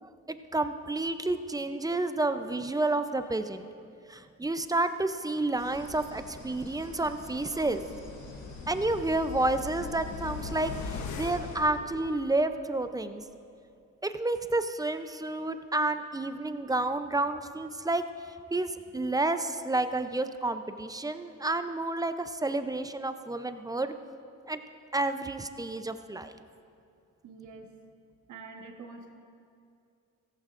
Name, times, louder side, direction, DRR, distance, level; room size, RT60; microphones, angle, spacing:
voice 1, 0.0-3.7 4.1-7.8 8.7-13.2 14.0-18.0 18.5-23.9 24.5-24.6 24.9-26.3, right 2 dB, 10° right, 9 dB, 0.5 m, -30 dB
sound 1, 5.6-11.6, left 2 dB, 55° left, 3.0 m, -47 dB
sound 2, 7.4-12.6 13.0-13.1, left 5 dB, 75° left, 1.0 m, -41 dB
voice 2, 27.2-27.7 28.3-29.1, right 4 dB, 70° right, 3 dB, 1.3 m, -45 dB
15.5 x 14.5 x 2.5 m, 2.5 s
cardioid pair, 90°, 30 cm